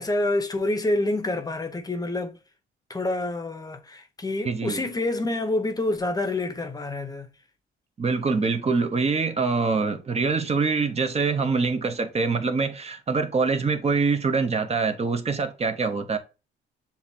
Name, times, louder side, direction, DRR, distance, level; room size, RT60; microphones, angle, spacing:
voice 1, 0.0-2.4 2.9-7.3, left 2 dB, 20° left, 0.8 m, -27 dB
voice 2, 4.4-4.8 8.0-16.2, right 4 dB, 30° right, 0.8 m, -24 dB
7.1 x 2.5 x 2.8 m
cardioid pair, 90°, 20 cm